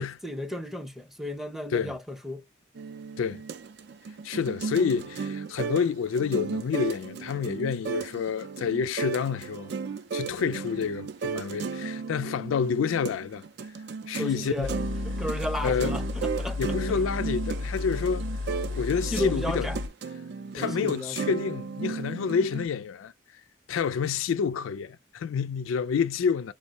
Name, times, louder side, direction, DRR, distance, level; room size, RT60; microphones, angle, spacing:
voice 1, 0.0-2.4 14.2-14.8 15.0-17.0 19.0-19.8 20.5-21.3, left 1 dB, ahead, 0.5 m, -34 dB
sound 1, 2.7-22.7, right 5 dB, 55° right, 0.4 m, -35 dB
voice 2, 4.2-9.7 10.1-13.4 14.1-14.8 15.6-15.9 16.6-18.2 18.7-19.7 20.5-23.1 23.7-26.5, left 6 dB, 85° left, 0.4 m, -28 dB
sound 2, 14.6-19.9, left 3 dB, 75° right, 0.8 m, -33 dB
4.2 x 2.0 x 2.7 m
head